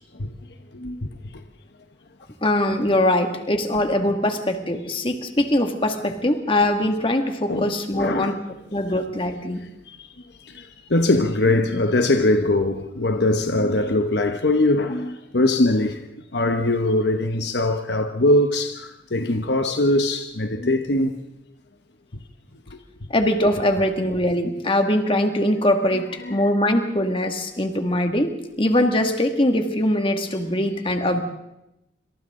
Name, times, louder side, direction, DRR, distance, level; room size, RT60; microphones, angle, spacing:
voice 1, 2.4-8.4 8.7-9.6 23.1-31.2, left 1 dB, 30° left, 2.1 m, -22 dB
voice 2, 7.5-8.4 9.9-10.0 10.5-10.6 10.9-16.0 16.3-21.1 26.2-26.5, left 2 dB, 60° left, 1.1 m, -21 dB
27.5 x 26.0 x 3.8 m
head